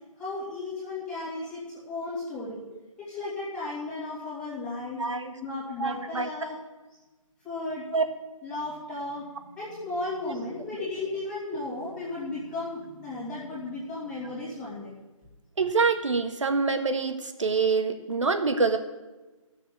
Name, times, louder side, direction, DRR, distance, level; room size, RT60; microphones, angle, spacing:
voice 1, 0.2-2.6 3.0-5.1 5.4-6.6 7.4-7.8 8.4-9.2 9.5-14.9, left 2 dB, 5° left, -9 dB, 2.4 m, -35 dB
voice 2, 5.0-5.3 5.8-6.3 7.9-8.0 10.3-10.4 15.6-18.8, right 4 dB, 60° right, 7 dB, 1.6 m, -26 dB
14.5 x 7.0 x 7.5 m, 1.2 s
hypercardioid pair, 170°, 18 cm